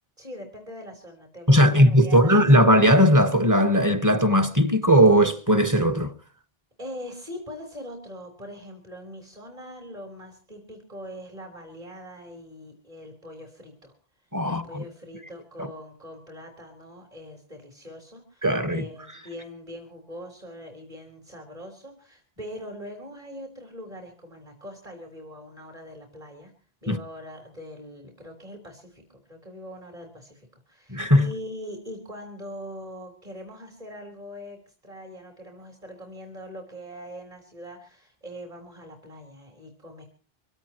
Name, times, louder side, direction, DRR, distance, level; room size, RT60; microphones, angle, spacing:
voice 1, 0.2-2.3 6.8-13.9 14.2-26.5 26.8-40.0, equal, 35° right, 3.9 m, -42 dB
voice 2, 1.5-6.1 14.3-14.8 15.6-15.7 18.4-18.8 26.9-27.0 30.9-31.3, equal, 20° right, 1.3 m, -18 dB
24.5 x 16.5 x 3.0 m
omnidirectional pair, 1.0 m